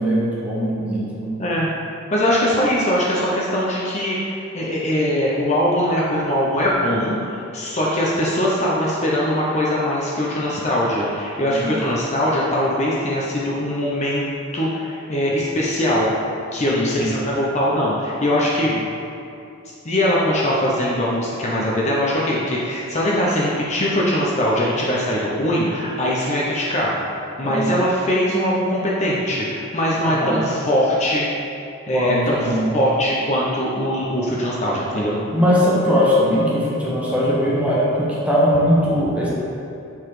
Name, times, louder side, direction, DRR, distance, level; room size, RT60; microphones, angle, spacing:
voice 1, 0.0-1.4 11.5-11.7 16.7-17.1 18.6-18.7 27.4-27.7 30.0-30.4 31.9-32.7 35.3-39.3, equal, 5° right, -7 dB, 1.3 m, -20 dB
voice 2, 1.4-1.7 2.1-14.3 14.5-16.1 16.5-18.7 19.8-26.9 27.4-31.3 31.9-32.5 32.7-35.2, equal, 35° left, -5 dB, 0.8 m, -21 dB
7.3 x 4.1 x 4.8 m, 2.6 s
head